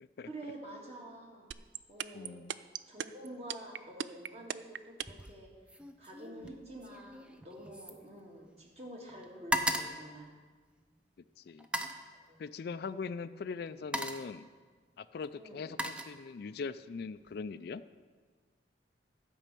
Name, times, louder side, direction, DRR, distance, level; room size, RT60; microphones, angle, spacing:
voice 1, 0.3-1.5 1.9-2.4 2.9-5.5 6.0-10.3 12.1-12.4 15.3-15.7, right 1 dB, 35° right, -1 dB, 1.9 m, -48 dB
sound 1, 1.5-5.3, right 10 dB, 75° right, 0.3 m, -37 dB
voice 2, 2.1-2.5 11.4-11.7 12.4-14.5 15.0-17.8, left 5 dB, 60° left, 13 dB, 0.4 m, -41 dB
sound 2, 5.0-5.4 5.7-8.8 9.1-11.0 11.6-12.1 13.1-13.3 13.7-14.4 15.2-16.6 17.0-17.4, equal, 5° right, 0.5 m, -38 dB
12.0 x 5.4 x 7.6 m, 1.5 s
head